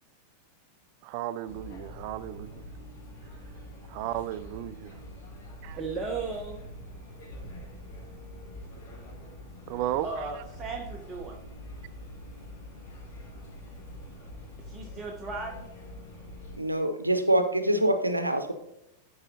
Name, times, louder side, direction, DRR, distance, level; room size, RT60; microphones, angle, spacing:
voice 1, 1.0-2.6 3.9-5.0 5.6-5.8 9.7-10.1, right 13 dB, 45° right, 17 dB, 0.3 m, -34 dB
sound 1, 1.5-16.6, left 1 dB, 50° left, 2.8 m, -45 dB
voice 2, 5.8-6.6 10.0-11.4 14.6-15.7, right 4 dB, 25° right, 1 dB, 0.9 m, -36 dB
voice 3, 16.6-18.5, right 1 dB, 85° right, 8 dB, 0.7 m, -25 dB
12.5 x 4.7 x 2.8 m, 0.86 s
figure-of-eight pair, 90°, 0 cm